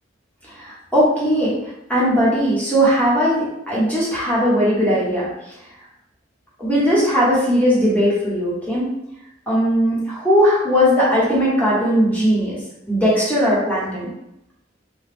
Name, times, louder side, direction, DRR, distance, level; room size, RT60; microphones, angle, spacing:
voice 1, 0.5-1.5 1.9-5.3 6.6-8.9 9.5-12.6 12.9-14.1, equal, 10° left, -8 dB, 1.1 m, -18 dB
2.9 x 2.2 x 3.4 m, 0.84 s
head